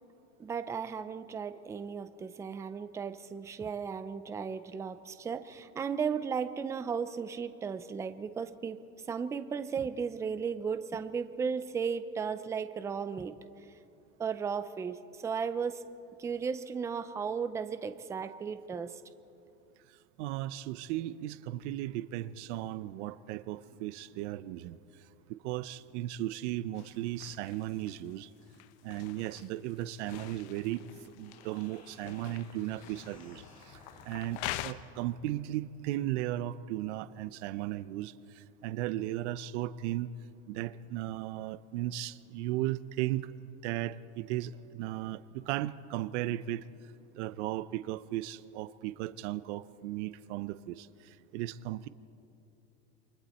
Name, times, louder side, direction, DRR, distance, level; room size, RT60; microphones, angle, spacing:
voice 1, 0.4-13.4 14.2-15.8 16.2-19.0, right 6 dB, 10° right, 11 dB, 0.4 m, -35 dB
voice 2, 20.2-25.0 25.3-28.3 28.8-30.8 31.1-40.1 40.5-43.3 43.6-46.7 47.1-51.9, right 14 dB, 85° right, 15 dB, 0.7 m, -36 dB
sound 1, 26.7-34.7, left 15 dB, 75° left, 0.8 m, -45 dB
sound 2, 31.0-34.8, left 1 dB, 20° left, 6.3 m, -57 dB
28.5 x 24.0 x 4.2 m, 2.7 s
cardioid pair, 160°, 34 cm